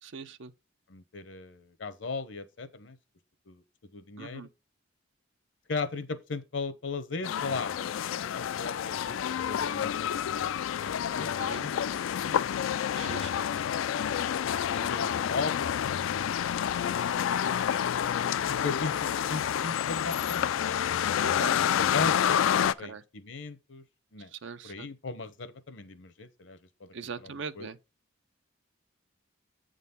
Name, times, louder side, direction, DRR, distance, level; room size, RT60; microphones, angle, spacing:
voice 1, 0.0-0.5 4.2-4.5 11.3-11.7 12.9-13.5 21.2-21.6 22.6-23.0 24.3-24.9 26.9-27.8, right 5 dB, 65° right, 0.5 m, -41 dB
voice 2, 0.9-3.0 3.5-3.6 3.9-4.5 5.7-7.9 8.2-9.2 9.4-11.3 11.6-11.8 14.7-16.5 18.5-20.8 21.5-23.8 24.1-24.3 24.6-26.9 27.2-27.7, left 4 dB, 65° left, 0.8 m, -38 dB
sound 1, 7.2-22.7, left 9 dB, 80° left, 0.3 m, -29 dB
8.3 x 3.8 x 5.5 m
head